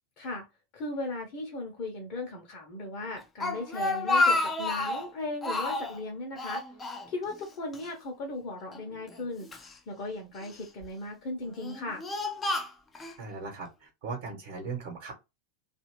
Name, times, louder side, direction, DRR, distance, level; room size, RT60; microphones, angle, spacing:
voice 1, 0.2-0.5 0.7-6.6 7.1-12.0, left 2 dB, 40° left, 0 dB, 0.9 m, -37 dB
Speech, 3.2-5.1 5.4-6.0 6.4-7.5 7.7-7.9 8.7-9.7 10.4-10.9 11.5-13.2, left 2 dB, 15° left, 0.5 m, -30 dB
voice 2, 13.2-15.1, right 4 dB, 50° right, 1 dB, 1.1 m, -38 dB
2.8 x 2.5 x 3.1 m, 0.23 s
figure-of-eight pair, 90°, 0 cm